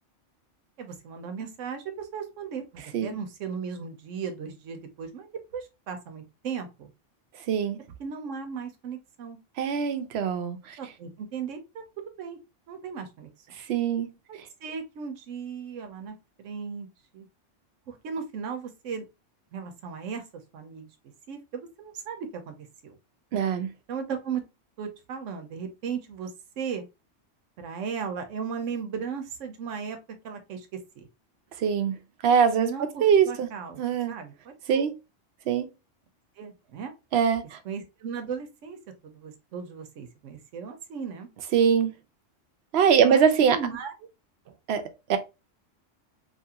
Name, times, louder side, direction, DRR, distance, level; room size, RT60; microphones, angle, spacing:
voice 1, 0.8-6.9 8.0-9.4 10.8-11.8 12.2-12.4 12.7-13.6 14.3-16.9 17.1-17.3 17.9-19.0 19.5-20.2 20.5-20.9 21.3-23.0 23.9-24.4 24.8-26.8 27.6-30.0 30.2-31.1 32.6-33.8 34.1-34.9 36.4-36.9 37.6-41.3 43.0-43.9, right 6 dB, 80° right, 1.0 m, -36 dB
voice 2, 7.5-7.8 9.6-10.8 13.7-14.1 23.3-23.7 31.6-31.9 32.2-32.7 33.0-33.5 33.8-34.1 34.7-34.9 35.5-35.7 37.1-37.6 41.5-41.9 42.7-43.6 44.7-45.2, right 7 dB, 65° right, 0.8 m, -22 dB
2.9 x 2.5 x 2.7 m
omnidirectional pair, 1.3 m